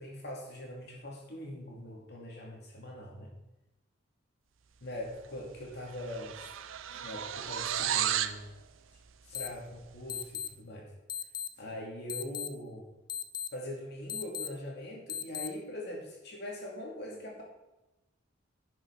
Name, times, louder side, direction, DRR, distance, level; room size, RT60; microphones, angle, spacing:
voice 1, 0.0-3.3 4.8-6.3 7.0-8.4 9.3-10.9 11.6-12.8 13.5-17.4, left 1 dB, 55° left, -2 dB, 2.6 m, -42 dB
sound 1, 5.2-5.5 5.7-8.4, right 10 dB, 80° right, 0.6 m, -33 dB
sound 2, 9.3-9.5 10.1-10.5 11.1-11.5 12.1-12.5 13.1-13.5 14.1-14.5 15.1-15.5, left 8 dB, 25° left, 0.5 m, -36 dB
11.5 x 6.2 x 5.8 m, 0.97 s
head